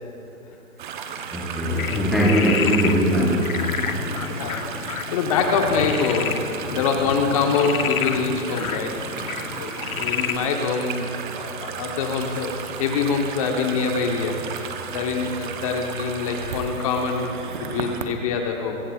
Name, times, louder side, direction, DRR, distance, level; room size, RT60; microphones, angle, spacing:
sound 1, 0.8-18.1, right 7 dB, 35° right, 0.9 m, -34 dB
voice 1, 1.3-3.5, equal, ahead, -5 dB, 0.9 m, -20 dB
Frog, 1.7-10.4, left 7 dB, 75° left, 1.1 m, -30 dB
voice 2, 4.1-6.4 6.7-9.0 9.3-11.1 11.3-17.3 17.7-18.8, left 5 dB, 25° left, 3 dB, 1.0 m, -25 dB
24.0 x 15.0 x 2.4 m, 2.9 s
hypercardioid pair, 155°, 42 cm